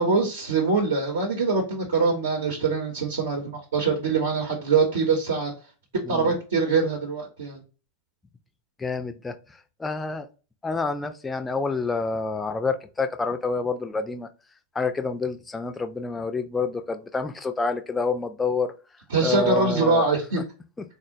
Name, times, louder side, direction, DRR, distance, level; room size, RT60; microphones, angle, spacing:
voice 1, 0.0-5.5 6.1-7.6 19.1-20.4, right 4 dB, 65° right, 0.7 m, -23 dB
voice 2, 8.8-9.4 9.8-10.3 10.6-14.3 14.7-18.7 19.2-20.1, left 4 dB, 10° left, 0.4 m, -28 dB
3.7 x 2.0 x 2.5 m
figure-of-eight pair, 90°, 0 cm